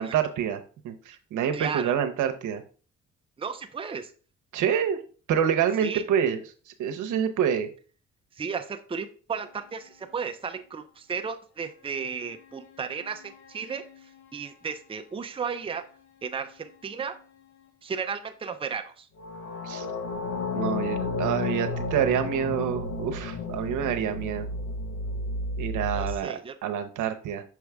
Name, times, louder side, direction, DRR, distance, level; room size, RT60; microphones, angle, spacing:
voice 1, 0.0-2.6 4.5-5.0 5.3-6.4 6.8-7.7 19.6-19.9 20.5-24.5 25.6-27.4, right 8 dB, 80° right, 7 dB, 0.9 m, -27 dB
voice 2, 1.5-1.9 3.4-4.1 5.8-6.0 8.4-13.8 14.3-15.8 16.2-17.2 17.8-19.1 25.9-26.5, right 6 dB, 20° right, 7 dB, 0.6 m, -34 dB
sound 1, 12.8-14.0 19.2-26.1, left 3 dB, 70° left, 1.1 m, -32 dB
6.2 x 4.7 x 3.5 m, 0.39 s
cardioid pair, 90°, 30 cm